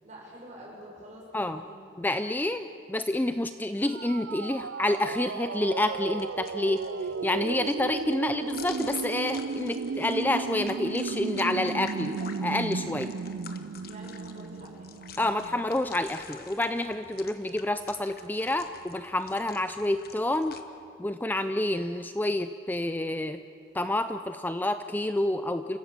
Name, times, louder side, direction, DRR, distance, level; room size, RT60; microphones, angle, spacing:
voice 1, 0.0-1.8 13.9-14.9, equal, 40° right, -3 dB, 7.0 m, -47 dB
voice 2, 2.0-13.1 15.2-20.6 21.0-23.4 23.7-25.8, left 1 dB, 10° left, 9 dB, 0.5 m, -28 dB
sound 1, 3.8-15.7, right 5 dB, 85° right, 0.5 m, -35 dB
sound 2, 6.2-20.6, left 6 dB, 55° left, 1.2 m, -49 dB
28.5 x 16.0 x 7.4 m, 2.5 s
head